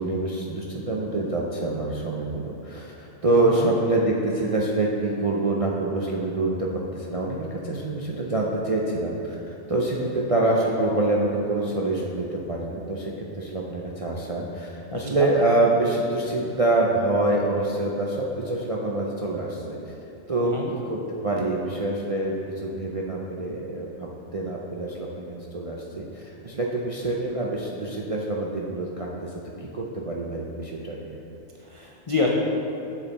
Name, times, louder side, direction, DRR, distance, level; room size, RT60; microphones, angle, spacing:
voice 1, 0.0-19.8 20.3-29.3 29.6-31.2, right 2 dB, 50° right, -3 dB, 0.4 m, -26 dB
voice 2, 14.9-15.3 20.4-20.7 31.6-32.3, left 4 dB, 50° left, -2 dB, 0.3 m, -28 dB
7.3 x 6.9 x 4.0 m, 2.8 s
omnidirectional pair, 1.4 m